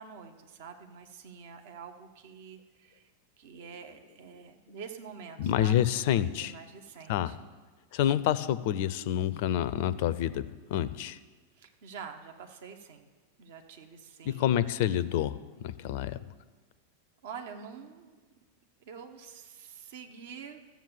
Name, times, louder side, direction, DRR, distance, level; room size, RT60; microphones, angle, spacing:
voice 1, 0.0-3.1 3.4-7.4 11.6-13.1 13.4-14.6 17.2-18.2 18.8-20.6, right 6 dB, 55° right, 5 dB, 1.2 m, -46 dB
voice 2, 5.4-6.5 7.1-7.4 7.9-11.2 14.3-16.2, left 11 dB, 50° left, 16 dB, 0.5 m, -28 dB
14.0 x 7.3 x 7.2 m, 1.4 s
figure-of-eight pair, 90°, 0 cm